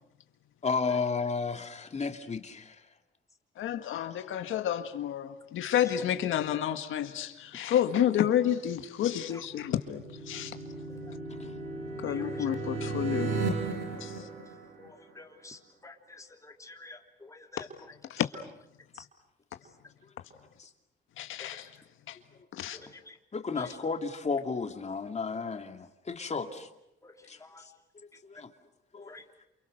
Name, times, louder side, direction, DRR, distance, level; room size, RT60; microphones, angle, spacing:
voice 1, 0.6-2.8 11.3-11.5 20.6-20.7 23.3-26.7 27.3-27.4 28.2-28.5 28.9-29.1, left 4 dB, 35° left, 2.6 m, -33 dB
voice 2, 3.6-10.0 10.3-10.5 12.0-13.3 14.0-14.2 17.6-17.7 18.1-18.3 21.2-21.7 22.1-22.2 22.5-22.8, left 10 dB, 80° left, 1.8 m, -30 dB
sound 1, 9.4-15.2, right 3 dB, 90° right, 5.7 m, -35 dB
voice 3, 15.2-17.7 19.0-19.1 21.4-21.5 22.7-23.2 23.5-23.6 27.0-27.1 27.4-27.6 29.1-29.2, left 3 dB, 15° left, 3.5 m, -49 dB
29.0 x 28.5 x 6.6 m
cardioid pair, 90°, 20 cm